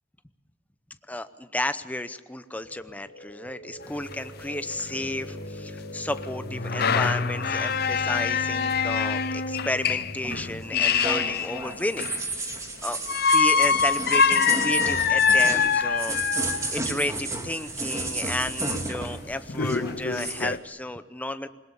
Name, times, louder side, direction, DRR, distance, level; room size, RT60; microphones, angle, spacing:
voice 1, 1.1-13.0 13.3-21.5, left 1 dB, 10° left, 11 dB, 0.8 m, -32 dB
sound 1, 2.5-14.6, equal, 85° left, 3.7 m, -41 dB
sound 2, 3.8-3.9 4.1-4.2 4.8-4.9 6.2-12.3 13.1-16.7 18.5-18.6 19.0-19.1 19.5-20.6, left 6 dB, 55° left, 0.8 m, -24 dB
sound 3, 10.2-19.3 19.6-20.5, right 2 dB, 15° right, 2.5 m, -32 dB
21.5 x 20.5 x 7.0 m, 1.3 s
head